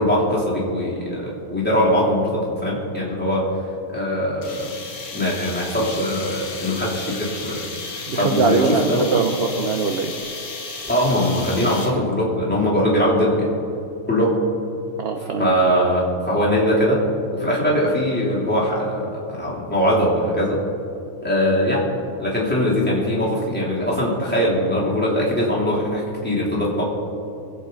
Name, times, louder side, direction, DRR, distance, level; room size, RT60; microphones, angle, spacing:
voice 1, 0.0-3.5 3.9-4.7 5.1-9.1 10.9-13.5 14.1-14.4 15.4-17.0 17.3-20.6 21.2-21.9 22.2-26.8, equal, 5° left, -7 dB, 3.3 m, -21 dB
sound 1, 4.4-12.1, left 4 dB, 85° left, 1.8 m, -34 dB
voice 2, 8.1-10.1 15.0-15.6, right 4 dB, 50° right, 4 dB, 0.9 m, -22 dB
23.0 x 8.1 x 4.0 m, 2.7 s
omnidirectional pair, 1.5 m